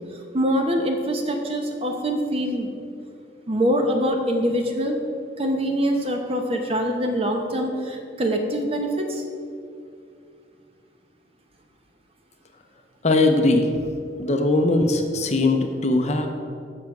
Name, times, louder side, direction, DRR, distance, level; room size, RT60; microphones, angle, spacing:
voice 1, 0.1-2.7 3.5-5.0 5.4-9.2, equal, 30° right, 3 dB, 0.8 m, -24 dB
voice 2, 13.0-13.7 14.2-16.3, left 2 dB, 35° left, 5 dB, 0.6 m, -20 dB
7.3 x 5.9 x 5.9 m, 2.4 s
head